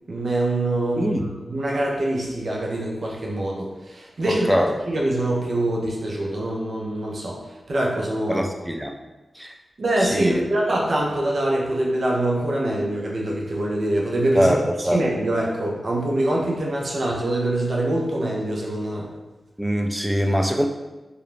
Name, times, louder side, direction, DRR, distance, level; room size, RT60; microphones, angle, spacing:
voice 1, 0.1-1.2 1.5-4.5 4.9-7.4 7.7-8.5 9.8-19.1, right 1 dB, 65° right, -2 dB, 0.5 m, -24 dB
voice 2, 1.0-1.3 4.3-4.7 8.3-8.9 9.4-9.5 10.0-10.4 14.4-15.0 19.6-20.7, equal, 5° right, 3 dB, 0.3 m, -22 dB
2.4 x 2.0 x 3.1 m, 1.1 s
cardioid pair, 50°, 0 cm